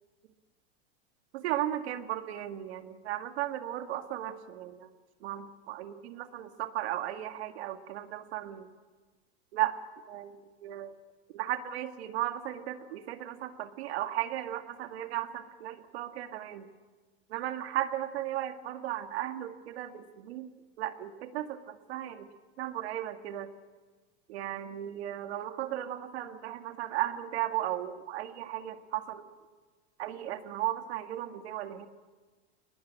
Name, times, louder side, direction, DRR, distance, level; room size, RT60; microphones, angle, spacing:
voice 1, 1.3-4.7 5.2-8.7 9.5-9.8 10.1-10.4 10.6-10.9 11.3-16.6 17.3-20.5 20.8-22.3 22.6-23.5 24.3-29.3 30.0-31.9, right 13 dB, 70° right, 7 dB, 2.0 m, -35 dB
22.5 x 21.0 x 8.9 m, 1.4 s
supercardioid pair, 155°, 33 cm